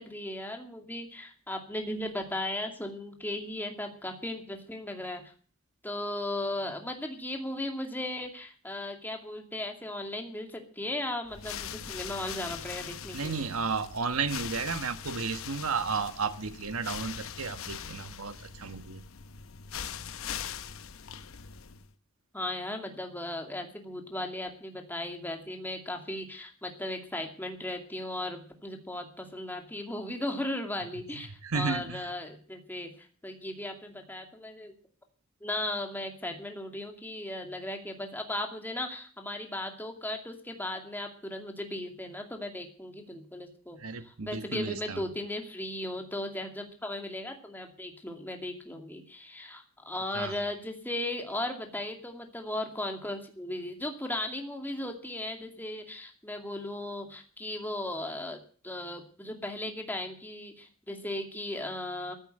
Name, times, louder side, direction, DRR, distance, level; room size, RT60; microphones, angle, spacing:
voice 1, 0.0-5.3 5.8-13.5 22.3-34.7 35.4-58.4 58.6-62.1, left 1 dB, 10° left, 3 dB, 2.4 m, -36 dB
sound 1, 11.3-21.9, left 8 dB, 65° left, 0.9 m, -41 dB
voice 2, 13.1-19.0 31.4-32.1 43.8-45.0 50.1-50.3, right 5 dB, 75° right, 10 dB, 1.2 m, -33 dB
14.5 x 9.1 x 9.0 m, 0.43 s
head